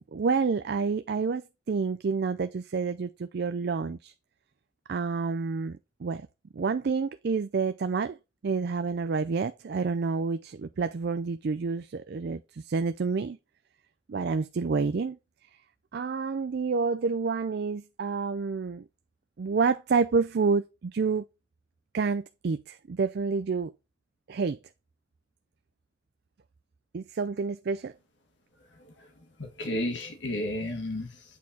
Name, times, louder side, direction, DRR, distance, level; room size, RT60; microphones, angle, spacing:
voice 1, 0.1-1.4 1.7-4.1 4.9-6.3 6.5-8.2 8.4-12.4 12.7-13.4 14.1-15.2 15.9-18.8 19.4-21.2 21.9-23.7 24.3-24.6 26.9-27.9, right 4 dB, 55° right, 0.4 m, -28 dB
voice 2, 28.7-29.1 29.4-31.4, left 1 dB, 70° left, 1.7 m, -33 dB
8.4 x 4.5 x 4.2 m
head